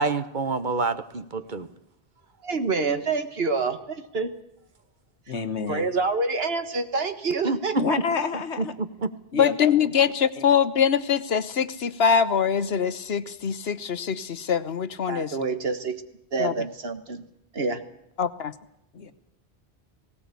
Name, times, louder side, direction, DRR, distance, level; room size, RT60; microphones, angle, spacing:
voice 1, 0.0-1.7 7.4-7.6 7.9-8.0 8.8-9.1, right 3 dB, 45° right, 12 dB, 1.2 m, -27 dB
voice 2, 2.4-4.3 5.7-8.0 15.1-16.0 16.3-17.3 17.5-17.8, right 4 dB, 65° right, 10 dB, 1.7 m, -27 dB
voice 3, 5.3-5.9 7.8-8.7 9.3-9.5 10.4-10.5 18.9-19.1, left 4 dB, 90° left, 10 dB, 1.7 m, -28 dB
voice 4, 9.3-15.3 16.4-16.5 18.2-18.5, left 7 dB, 65° left, 15 dB, 1.2 m, -23 dB
18.0 x 18.0 x 8.3 m, 0.80 s
omnidirectional pair, 1.1 m